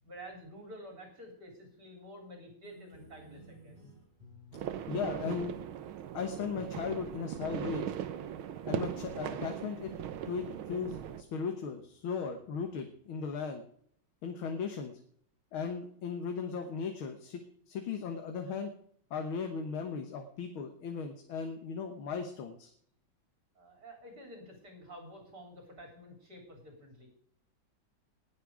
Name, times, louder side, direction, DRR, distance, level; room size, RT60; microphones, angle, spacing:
voice 1, 0.0-3.8 23.6-27.1, equal, 50° right, 2 dB, 4.2 m, -50 dB
sound 1, 2.6-13.2, right 1 dB, 20° right, 4.7 m, -57 dB
sound 2, 4.5-11.2, right 10 dB, 85° right, 1.8 m, -39 dB
voice 2, 4.9-5.5 6.1-7.9 8.7-9.9 10.3-13.6 14.2-15.0 15.5-18.7 19.1-22.7, left 6 dB, 85° left, 5 dB, 2.1 m, -37 dB
19.0 x 8.0 x 4.9 m, 0.64 s
omnidirectional pair, 2.2 m